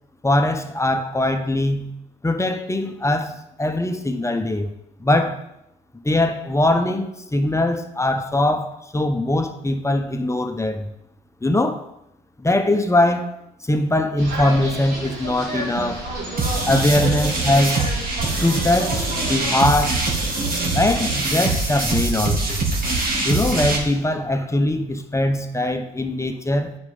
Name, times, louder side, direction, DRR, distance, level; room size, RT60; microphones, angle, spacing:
voice 1, 0.2-1.9 2.2-4.7 5.0-5.4 6.0-10.9 11.4-11.8 12.4-16.1 16.6-17.9 18.4-20.0 20.7-22.6 23.2-26.8, left 1 dB, 15° left, 1.1 m, -21 dB
sound 1, 14.2-19.5, right 1 dB, 75° right, 3.4 m, -31 dB
sound 2, 16.4-23.8, right 2 dB, 50° right, 2.4 m, -23 dB
9.5 x 5.4 x 5.5 m
hypercardioid pair, 55°, 19 cm